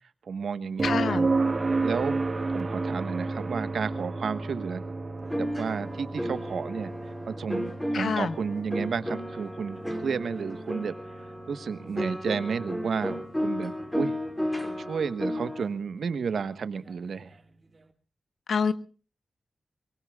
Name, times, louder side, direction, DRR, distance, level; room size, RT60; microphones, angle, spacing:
voice 1, 0.2-1.2 1.8-2.2 2.5-4.8 5.4-6.9 7.3-11.0 11.5-14.2 14.8-17.3, right 6 dB, 85° right, 12 dB, 1.3 m, -32 dB
voice 2, 0.8-1.3 7.9-8.3 18.5-18.7, left 5 dB, 90° left, 13 dB, 1.2 m, -26 dB
sound 1, 0.8-14.6 16.9-17.0, right 3 dB, 35° right, 1.9 m, -32 dB
sound 2, 5.2-15.7, equal, 5° left, 2.7 m, -33 dB
23.5 x 23.5 x 2.4 m, 0.38 s
wide cardioid pair, 140°, 0 cm